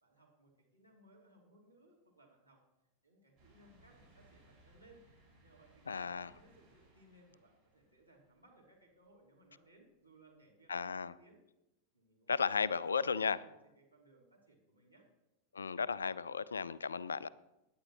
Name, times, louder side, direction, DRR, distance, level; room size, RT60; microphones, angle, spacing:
voice 1, 0.0-2.6 3.0-5.0 5.4-11.4 11.9-15.1, right 2 dB, 90° right, -3 dB, 2.7 m, -65 dB
sound 1, 3.4-8.9 9.4-9.5 10.9-11.0, right 2 dB, 30° right, 5.3 m, -66 dB
voice 2, 5.9-6.3 10.7-11.1 12.3-13.4 15.5-17.3, left 5 dB, 75° left, 20 dB, 0.3 m, -34 dB
17.5 x 10.0 x 3.0 m, 0.93 s
figure-of-eight pair, 90°, 0 cm